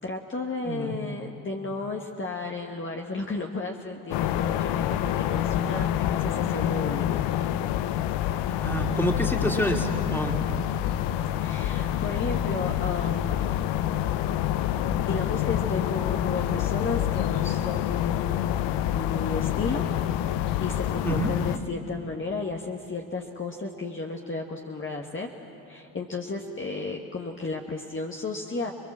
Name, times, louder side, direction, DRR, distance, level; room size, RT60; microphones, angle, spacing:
voice 1, 0.0-7.3 11.4-13.6 15.1-19.8 20.6-25.3 25.7-28.7, left 3 dB, 30° left, 0 dB, 1.7 m, -33 dB
sound 1, 4.1-21.6, left 11 dB, 85° left, 0.8 m, -27 dB
voice 2, 8.6-10.3 21.0-21.3, right 1 dB, 5° left, 2 dB, 3.0 m, -27 dB
26.5 x 21.5 x 7.6 m, 2.7 s
supercardioid pair, 65°, 41 cm